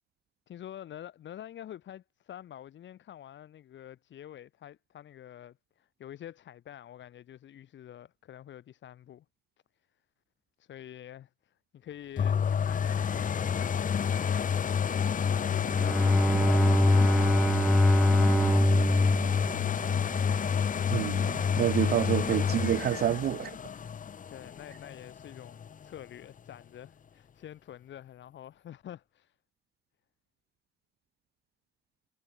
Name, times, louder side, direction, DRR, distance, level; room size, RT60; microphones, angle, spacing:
voice 1, 0.5-9.2 10.6-17.7 24.3-29.4, left 11 dB, 70° left, 2.2 m, -47 dB
sound 1, 12.2-25.9 26.4-26.5, left 7 dB, 40° left, 1.0 m, -29 dB
Bowed string instrument, 15.4-20.7, equal, ahead, 0.3 m, -24 dB
voice 2, 20.9-23.6, right 11 dB, 55° right, 0.5 m, -28 dB
cardioid pair, 90°, 20 cm